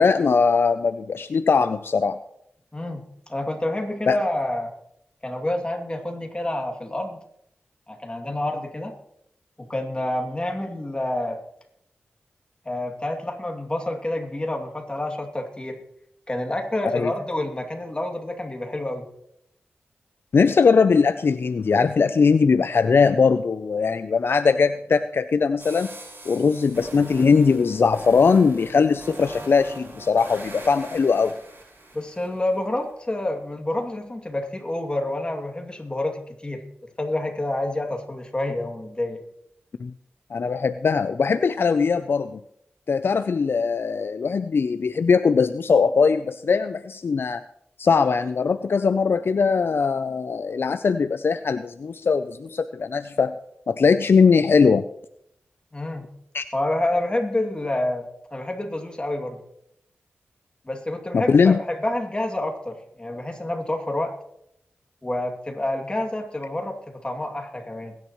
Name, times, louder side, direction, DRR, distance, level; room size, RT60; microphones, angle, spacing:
voice 1, 0.0-2.2 4.1-4.2 16.9-17.1 20.3-25.9 26.3-31.3 39.8-39.9 40.3-42.4 42.9-47.4 47.8-53.3 53.7-54.9 56.3-56.4 61.1-61.6, left 5 dB, 65° left, 11 dB, 0.5 m, -20 dB
voice 2, 2.7-4.7 5.2-7.2 7.9-8.9 9.6-11.4 12.6-15.8 16.3-19.1 31.9-36.6 37.0-39.2 55.7-56.1 56.5-59.4 60.7-64.1 65.0-67.9, left 1 dB, 25° left, 2 dB, 2.6 m, -28 dB
sound 1, 25.6-32.6, right 2 dB, 65° right, 6.3 m, -42 dB
21.5 x 10.5 x 3.1 m, 0.76 s
cardioid pair, 55°, 4 cm